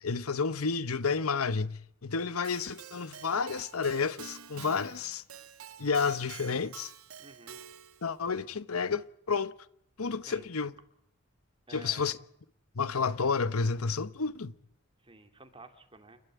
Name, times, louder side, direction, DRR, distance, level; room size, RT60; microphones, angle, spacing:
voice 1, 0.0-5.2 5.8-6.9 8.0-9.5 10.0-10.7 11.7-12.2 12.8-14.5, left 5 dB, 80° left, 1.0 m, -30 dB
Keyboard (musical), 2.4-8.1, right 8 dB, 80° right, 1.4 m, -48 dB
voice 2, 7.2-7.6 10.3-10.5 11.7-12.1 15.0-16.2, right 3 dB, 25° right, 2.9 m, -52 dB
29.0 x 13.0 x 9.1 m
head